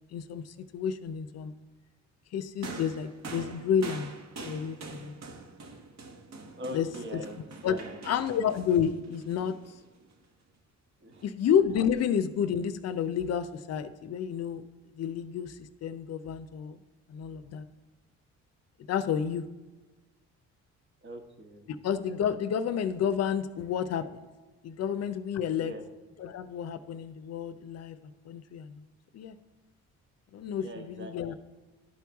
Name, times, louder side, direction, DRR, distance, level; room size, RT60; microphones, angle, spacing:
voice 1, 0.1-1.5 2.3-4.1 4.4-5.1 6.7-6.9 7.1-7.2 7.6-7.8 8.0-9.6 11.2-14.6 15.0-16.8 17.1-17.6 18.9-19.5 21.7-24.0 24.6-25.7 26.2-28.8 29.1-29.4 30.3-31.3, left 8 dB, 55° left, 12 dB, 0.6 m, -30 dB
sound 1, 2.6-10.1 11.1-11.3, right 3 dB, 60° right, 1.1 m, -45 dB
voice 2, 6.6-8.0 11.0-11.2 21.0-21.7 25.6-25.8 30.6-31.1, equal, 40° right, 5 dB, 1.1 m, -42 dB
11.5 x 4.6 x 3.5 m, 1.2 s
cardioid pair, 90°, 30 cm